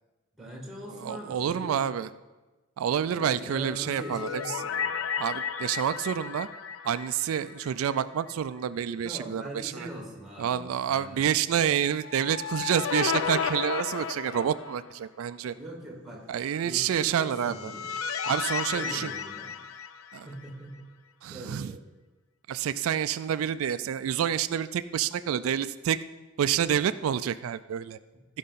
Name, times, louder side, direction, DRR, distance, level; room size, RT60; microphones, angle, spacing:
voice 1, 0.4-1.8 3.1-4.9 9.0-10.6 10.9-11.3 15.6-16.2 16.6-17.9 18.7-19.5 20.2-20.8 21.3-21.9 23.2-23.3, right 1 dB, ahead, -2 dB, 2.0 m, -41 dB
voice 2, 0.9-2.1 2.8-4.4 5.2-6.5 6.8-9.9 10.4-15.5 16.3-17.7 18.3-19.1 20.1-20.3 21.2-21.7 22.5-26.0 26.4-28.0, right 9 dB, 85° right, 13 dB, 0.3 m, -28 dB
sound 1, 3.7-8.0 8.3-8.4 11.9-15.0 17.1-20.5, left 7 dB, 85° left, 0.5 m, -33 dB
15.5 x 5.4 x 4.1 m, 1.2 s
head